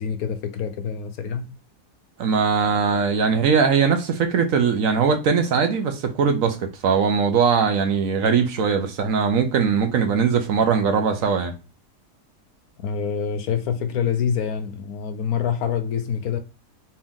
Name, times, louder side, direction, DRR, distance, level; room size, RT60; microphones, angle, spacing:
voice 1, 0.0-1.5 12.8-16.4, left 7 dB, 70° left, 1.0 m, -26 dB
voice 2, 2.2-11.5, right 6 dB, 65° right, 1.0 m, -20 dB
4.4 x 2.9 x 3.6 m
omnidirectional pair, 1.7 m